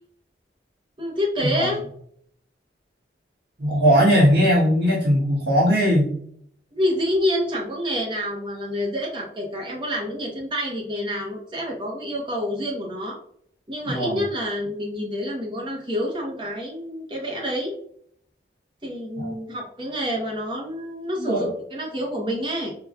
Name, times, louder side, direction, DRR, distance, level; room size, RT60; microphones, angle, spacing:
voice 1, 1.0-1.8 6.7-13.2 13.7-17.7 18.8-22.7, equal, 25° right, -2 dB, 0.8 m, -27 dB
voice 2, 3.6-6.0 13.8-14.2 19.2-19.3 21.2-21.5, equal, 70° right, -7 dB, 1.5 m, -19 dB
4.8 x 2.3 x 2.2 m, 0.64 s
head